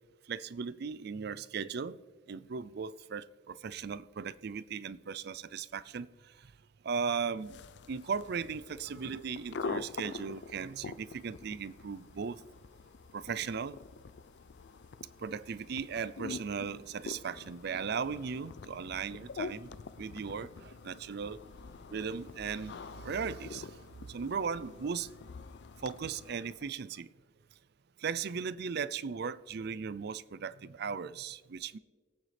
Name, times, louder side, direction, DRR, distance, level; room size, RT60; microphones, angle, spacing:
voice 1, 0.3-2.0 2.3-6.5 6.8-7.6 7.9-12.4 13.1-13.8 15.2-19.7 20.0-21.4 21.9-25.1 25.8-27.1 28.0-31.8, right 6 dB, 55° right, 0.4 m, -37 dB
sound 1, 7.4-26.7, left 4 dB, 60° left, 0.4 m, -46 dB
22.5 x 8.9 x 3.4 m
head